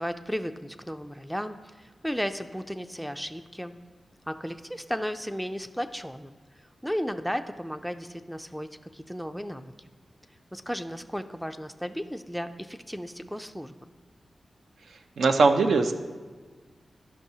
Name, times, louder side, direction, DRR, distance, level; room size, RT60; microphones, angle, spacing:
voice 1, 0.0-3.7 4.3-6.4 6.8-9.7 10.5-13.9, equal, ahead, 9 dB, 0.3 m, -34 dB
voice 2, 15.2-15.9, right 4 dB, 85° right, 7 dB, 0.4 m, -20 dB
11.5 x 5.4 x 2.7 m, 1.4 s
cardioid pair, 75°, 0 cm